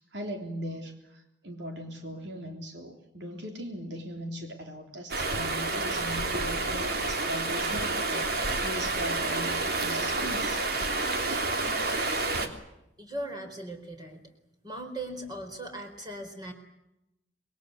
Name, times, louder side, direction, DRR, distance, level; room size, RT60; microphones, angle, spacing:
voice 1, 0.0-10.6, equal, 70° right, 3 dB, 3.6 m, -39 dB
Stream, 5.1-12.5, right 3 dB, 55° right, 3.2 m, -29 dB
voice 2, 13.0-14.2 14.6-16.5, right 1 dB, 20° right, 4 dB, 4.4 m, -39 dB
27.0 x 22.0 x 8.1 m, 0.88 s
head